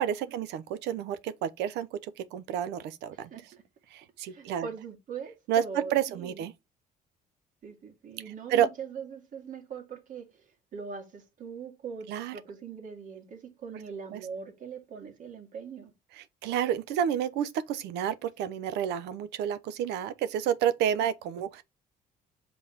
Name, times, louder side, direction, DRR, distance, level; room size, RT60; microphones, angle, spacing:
voice 1, 0.0-3.3 3.9-4.7 5.5-6.5 8.5-8.7 12.1-12.4 14.1-14.2 16.1-21.6, right 9 dB, 85° right, 0.9 m, -30 dB
voice 2, 3.1-3.6 4.3-6.4 7.6-10.4 10.7-15.9, right 6 dB, 50° right, 2.4 m, -41 dB
5.6 x 4.2 x 4.4 m
cardioid pair, 110°, 17 cm